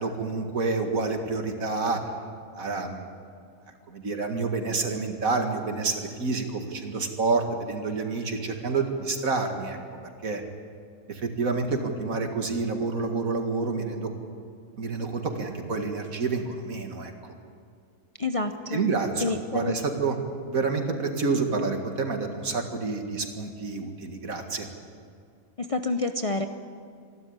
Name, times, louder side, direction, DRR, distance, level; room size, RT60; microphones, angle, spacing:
voice 1, 0.0-2.0 2.5-3.1 3.9-9.8 10.2-10.4 11.1-14.1 14.8-17.1 18.7-20.2 20.5-24.7, right 4 dB, 70° right, 4 dB, 2.4 m, -28 dB
voice 2, 18.2-18.8 19.2-19.8 25.6-26.5, left 3 dB, 30° left, 6 dB, 0.7 m, -28 dB
26.5 x 12.0 x 9.7 m, 2.2 s
omnidirectional pair, 1.5 m